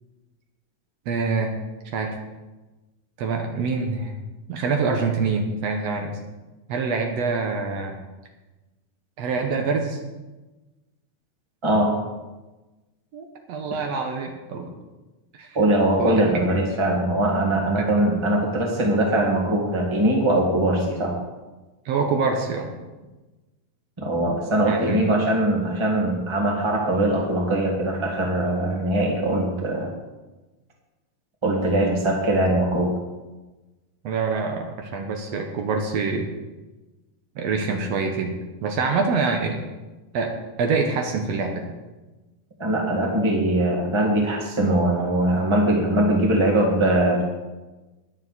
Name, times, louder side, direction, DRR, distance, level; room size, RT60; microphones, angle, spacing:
voice 1, 1.1-1.5 1.9-2.2 3.2-4.2 4.5-6.2 6.7-8.0 9.2-10.0 13.1-14.7 15.3-15.6 16.0-16.2 16.5-16.6 17.8-17.9 21.9-22.7 24.7-25.2 34.0-36.3 37.4-39.6 40.1-41.7, right 4 dB, 70° right, 3 dB, 2.0 m, -25 dB
voice 2, 11.6-11.9 15.5-21.1 24.0-29.9 31.4-32.9 42.6-47.2, right 1 dB, 10° right, 0 dB, 1.6 m, -21 dB
20.0 x 7.1 x 4.2 m, 1.2 s
omnidirectional pair, 3.3 m